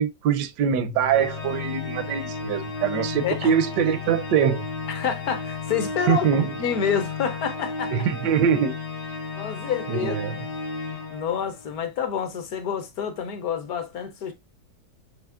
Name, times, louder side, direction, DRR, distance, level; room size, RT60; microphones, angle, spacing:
voice 1, 0.0-4.7 6.1-6.5 7.9-8.8 9.9-10.5, right 7 dB, 80° right, 1.2 m, -23 dB
sound 1, 0.7-12.6, left 6 dB, 45° right, 0.4 m, -43 dB
Organ, 1.1-11.7, left 4 dB, 85° left, 1.8 m, -34 dB
voice 2, 3.2-3.5 4.9-6.3 6.6-7.9 9.4-10.2 11.1-14.3, left 7 dB, 65° left, 1.1 m, -28 dB
5.9 x 2.9 x 2.4 m
omnidirectional pair, 1.9 m